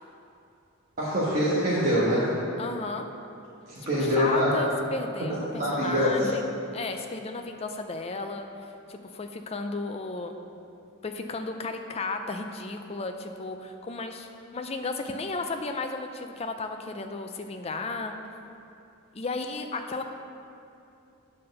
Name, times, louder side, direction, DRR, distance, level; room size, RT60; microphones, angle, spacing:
voice 1, 1.0-2.3 3.7-4.6 5.3-6.3, equal, 40° right, -9 dB, 1.2 m, -24 dB
voice 2, 2.6-3.1 3.8-6.5 6.7-10.4 11.0-18.2 19.1-20.0, left 3 dB, 30° left, 5 dB, 0.4 m, -34 dB
8.5 x 4.3 x 6.5 m, 2.7 s
head